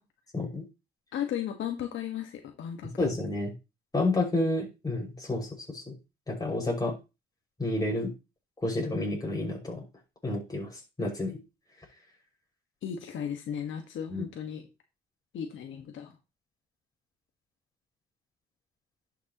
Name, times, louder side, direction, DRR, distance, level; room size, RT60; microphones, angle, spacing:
voice 1, 1.1-3.1 12.8-14.6 15.3-16.1, left 9 dB, 75° left, 3 dB, 1.6 m, -35 dB
voice 2, 3.0-3.5 3.9-5.9 6.3-6.9 7.6-8.1 8.6-9.8 10.2-11.4 14.1-14.2, left 2 dB, 20° left, -2 dB, 5.6 m, -30 dB
11.0 x 6.5 x 3.0 m, 0.27 s
cardioid pair, 90°, 20 cm